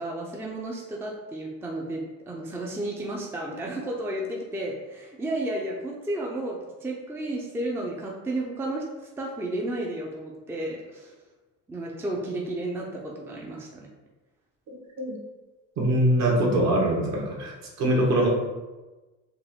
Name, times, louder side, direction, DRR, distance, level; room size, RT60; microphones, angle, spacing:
voice 1, 0.0-8.8 9.2-11.1 11.7-13.9, right 1 dB, 5° right, -2 dB, 0.5 m, -32 dB
voice 2, 15.8-17.5 17.8-18.3, right 1 dB, 55° right, -2 dB, 1.4 m, -22 dB
4.8 x 2.6 x 3.5 m, 1.2 s
cardioid pair, 120°, 33 cm